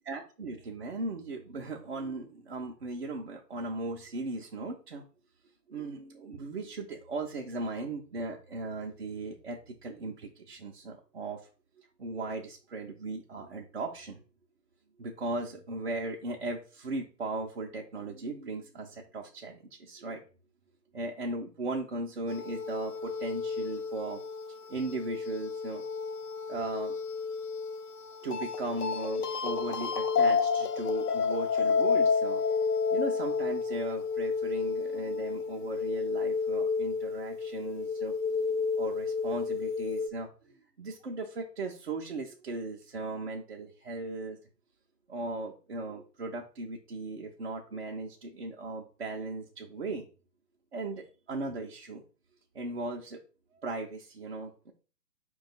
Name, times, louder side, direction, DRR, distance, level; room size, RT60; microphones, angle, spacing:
voice 1, 0.1-5.0 5.7-11.4 11.8-14.2 15.0-20.2 20.9-24.2 24.7-25.8 26.5-26.9 28.2-32.4 32.9-44.4 45.1-50.1 50.7-52.0 52.5-53.2 53.6-54.7, right 2 dB, 45° right, -1 dB, 0.4 m, -37 dB
sound 1, 22.3-40.1, left 5 dB, 65° left, 0.6 m, -31 dB
4.7 x 2.3 x 4.0 m, 0.37 s
figure-of-eight pair, 140°, 49 cm